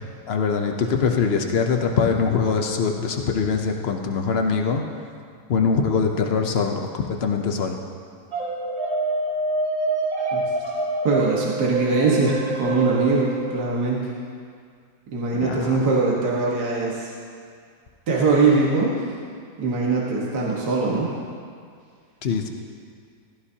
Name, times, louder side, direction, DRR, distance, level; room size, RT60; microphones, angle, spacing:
voice 1, 0.3-5.1 5.5-7.8 15.3-15.8 22.2-22.5, left 5 dB, 75° left, 3 dB, 0.5 m, -23 dB
sound 1, 8.3-13.6, right 2 dB, 70° right, 3.1 m, -26 dB
voice 2, 11.0-14.1 15.1-17.1 18.1-19.1 19.6-21.1, right 3 dB, 55° right, -4 dB, 2.0 m, -22 dB
16.0 x 13.5 x 2.9 m, 2.2 s
omnidirectional pair, 2.1 m